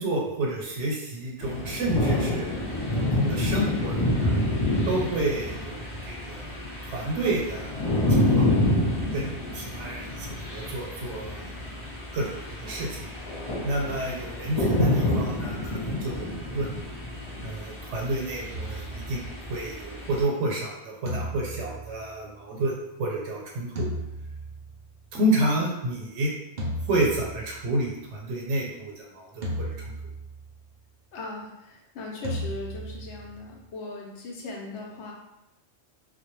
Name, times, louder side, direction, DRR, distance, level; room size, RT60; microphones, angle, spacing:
voice 1, 0.0-2.5 3.0-4.3 4.8-6.6 6.8-8.5 9.1-11.8 12.1-13.1 13.6-16.7 17.4-23.9 25.1-26.3 26.9-29.7, right 1 dB, 85° right, -2 dB, 0.9 m, -30 dB
sound 1, 1.4-20.2, left 1 dB, 35° left, 0.5 m, -28 dB
sound 2, 18.5-19.8 21.1-22.8 23.8-25.1 26.6-27.9 29.4-30.6 32.2-33.7, equal, 55° right, 0.5 m, -36 dB
voice 2, 31.1-35.1, left 2 dB, 85° left, -1 dB, 0.9 m, -38 dB
2.2 x 2.0 x 3.0 m, 0.90 s
omnidirectional pair, 1.2 m